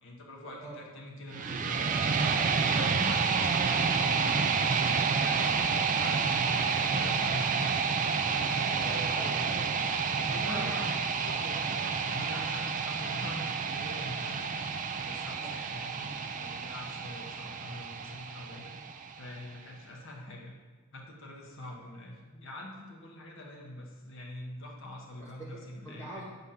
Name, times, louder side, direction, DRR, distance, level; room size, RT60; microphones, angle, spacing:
voice 1, 0.0-4.4 5.0-7.5 8.8-9.5 10.3-10.8 12.1-18.7 19.2-20.5 20.9-26.3, left 1 dB, 65° left, -1 dB, 1.2 m, -44 dB
sound 1, 1.3-19.3, right 5 dB, 35° right, 0.4 m, -29 dB
voice 2, 8.6-9.7 10.2-10.9 11.2-12.0 15.4-15.6 25.2-26.3, right 1 dB, 15° left, -5 dB, 1.4 m, -43 dB
8.1 x 3.5 x 5.6 m, 1.3 s
head